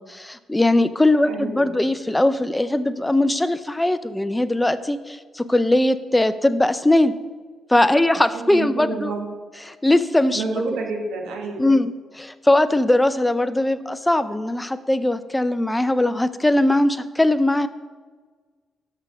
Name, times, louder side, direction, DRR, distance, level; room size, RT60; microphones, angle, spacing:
voice 1, 0.0-7.1 7.7-9.1 9.6-10.4 11.6-17.7, left 1 dB, 10° left, 13 dB, 0.5 m, -20 dB
voice 2, 1.2-1.8 8.3-9.3 10.3-11.8, right 3 dB, 85° right, 2 dB, 1.4 m, -29 dB
6.3 x 5.6 x 6.1 m, 1.5 s
supercardioid pair, 65°, 0 cm